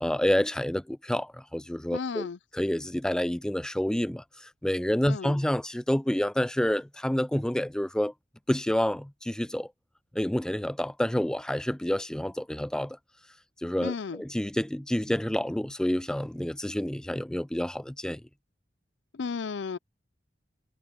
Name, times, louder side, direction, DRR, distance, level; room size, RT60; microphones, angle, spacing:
voice 1, 0.0-2.3 2.6-8.1 8.5-9.7 10.1-13.0 13.6-18.2, left 1 dB, 5° left, 0.3 m, -28 dB
voice 2, 1.9-2.4 5.1-5.4 13.8-14.2 19.1-19.8, left 5 dB, 75° left, 0.5 m, -34 dB
head